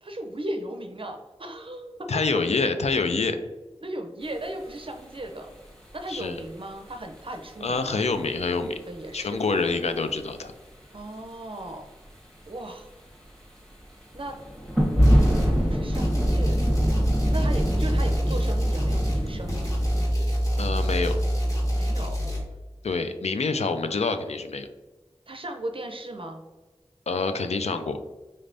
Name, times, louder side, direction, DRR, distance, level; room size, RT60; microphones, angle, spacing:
voice 1, 0.0-2.1 3.8-5.5 5.9-8.0 8.9-9.4 10.9-11.8 12.5-12.9 14.1-14.3 15.4-16.6 17.3-19.7 21.7-22.2 25.3-26.4, right 1 dB, 50° right, 4 dB, 0.5 m, -36 dB
voice 2, 2.1-3.4 6.1-6.4 7.6-8.8 9.1-10.5 20.6-21.1 22.8-24.7 27.1-28.0, left 4 dB, 75° left, 8 dB, 0.4 m, -26 dB
sound 1, 4.2-6.6 6.9-7.7 8.0-9.0 9.4-10.2 10.5-11.3 11.6-12.1 12.6-12.7 13.2-20.1, equal, 5° left, 1.2 m, -26 dB
sound 2, 15.0-15.6 15.9-22.4, equal, 30° left, 1.3 m, -25 dB
4.2 x 3.3 x 2.5 m, 1.2 s
wide cardioid pair, 40°, 11 cm